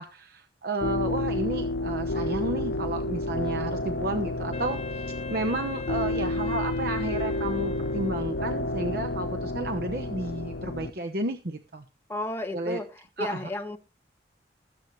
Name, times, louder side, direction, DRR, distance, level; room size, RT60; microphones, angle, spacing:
voice 1, 0.0-11.8 12.5-12.8 13.2-13.5, right 2 dB, 60° right, 5 dB, 1.0 m, -32 dB
sound 1, 0.8-10.9, left 2 dB, 85° left, 0.8 m, -30 dB
Wind instrument woodwind instrument, 4.5-8.8, left 4 dB, 40° left, 1.1 m, -40 dB
voice 2, 12.1-12.9 13.2-13.8, left 1 dB, 15° left, 4 dB, 1.5 m, -32 dB
20.0 x 8.1 x 3.2 m, 0.29 s
head